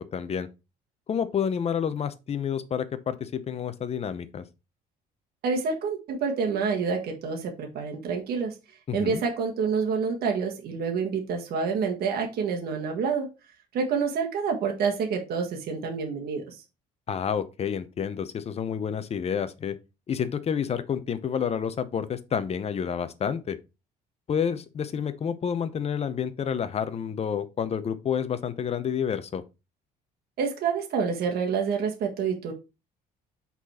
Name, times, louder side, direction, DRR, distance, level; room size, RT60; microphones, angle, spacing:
voice 1, 0.1-0.5 1.1-4.4 8.9-9.2 17.1-19.8 20.1-23.6 24.3-29.4, left 7 dB, 40° left, 0.8 m, -29 dB
voice 2, 5.4-8.5 8.9-13.3 13.7-16.6 30.4-32.5, right 5 dB, 65° right, 1.6 m, -28 dB
5.9 x 4.1 x 4.3 m
cardioid pair, 110°, 17 cm